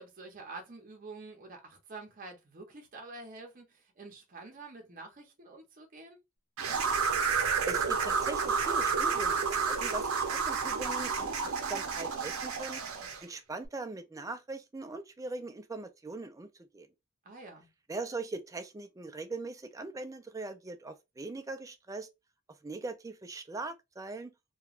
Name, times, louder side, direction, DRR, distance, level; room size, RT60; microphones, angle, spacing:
voice 1, 0.0-6.2 17.2-17.7, right 3 dB, 40° right, 0.7 m, -47 dB
sound 1, 6.6-13.2, right 5 dB, 80° right, 0.7 m, -30 dB
voice 2, 7.7-12.8 13.2-16.9 17.9-22.1 22.6-24.3, right 3 dB, 15° right, 0.3 m, -41 dB
2.9 x 2.2 x 2.4 m
head